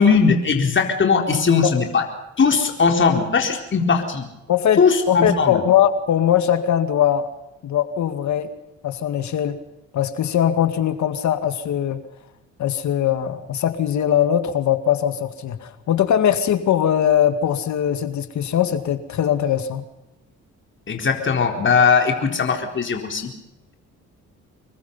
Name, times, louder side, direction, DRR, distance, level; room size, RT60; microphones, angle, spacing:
voice 1, 0.0-2.0 2.4-4.3 4.8-5.6 20.9-23.3, left 5 dB, 40° left, 3 dB, 4.1 m, -19 dB
voice 2, 4.5-4.8 5.1-7.3 7.6-8.5 8.8-9.6 9.9-12.0 12.6-19.8, left 10 dB, 70° left, 9 dB, 2.1 m, -20 dB
27.0 x 22.0 x 5.6 m, 0.91 s
cardioid pair, 90°, 30 cm